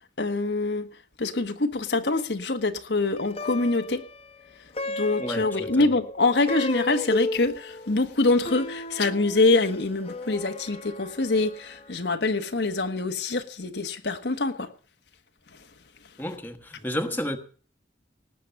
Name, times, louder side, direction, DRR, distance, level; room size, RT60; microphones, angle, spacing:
voice 1, 0.2-0.9 1.2-4.0 4.9-14.7, left 3 dB, 70° left, 1.2 m, -25 dB
Plucked string instrument, 3.2-12.6, left 2 dB, 35° left, 1.2 m, -35 dB
voice 2, 5.2-5.7 16.2-17.4, equal, 10° left, 1.4 m, -31 dB
18.5 x 8.3 x 7.0 m
head